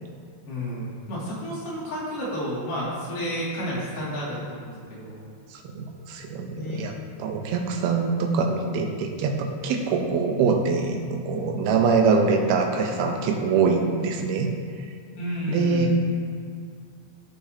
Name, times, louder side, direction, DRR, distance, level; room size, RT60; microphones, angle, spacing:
voice 1, 0.5-5.2 6.5-6.8 11.3-11.6 15.1-15.9, equal, 60° left, -8 dB, 4.0 m, -31 dB
voice 2, 5.5-6.9 7.2-14.5 15.5-15.9, right 5 dB, 80° right, 2 dB, 2.3 m, -24 dB
16.0 x 6.8 x 2.8 m, 2.1 s
omnidirectional pair, 5.3 m